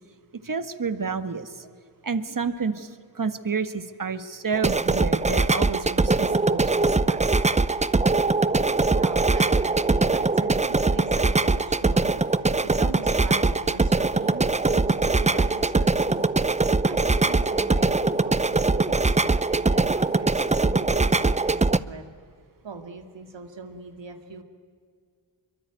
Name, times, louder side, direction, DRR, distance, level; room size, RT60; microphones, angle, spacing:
voice 1, 0.4-1.7 2.0-7.2, right 5 dB, 45° right, 11 dB, 1.6 m, -30 dB
sound 1, 4.5-21.8, right 3 dB, 15° right, 0.6 m, -22 dB
voice 2, 9.0-16.4 16.9-22.0 22.6-24.4, right 4 dB, 70° right, 5 dB, 2.4 m, -40 dB
24.0 x 23.5 x 9.3 m, 2.1 s
cardioid pair, 55°, 45 cm